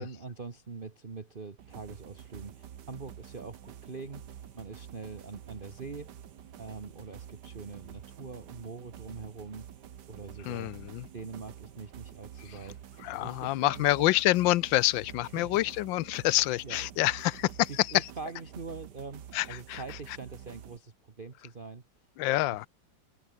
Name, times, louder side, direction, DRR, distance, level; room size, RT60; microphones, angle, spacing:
voice 1, 0.0-6.1 6.6-9.7 10.1-10.7 11.1-14.1 15.2-15.6 16.2-16.9 17.7-21.8, right 4 dB, 30° right, 1.6 m, -43 dB
sound 1, 1.6-20.8, right 10 dB, 65° right, 1.6 m, -48 dB
voice 2, 10.5-11.0 13.0-17.7 17.9-18.1 19.3-19.8 22.2-22.7, left 17 dB, 80° left, 1.3 m, -27 dB
omnidirectional pair, 2.1 m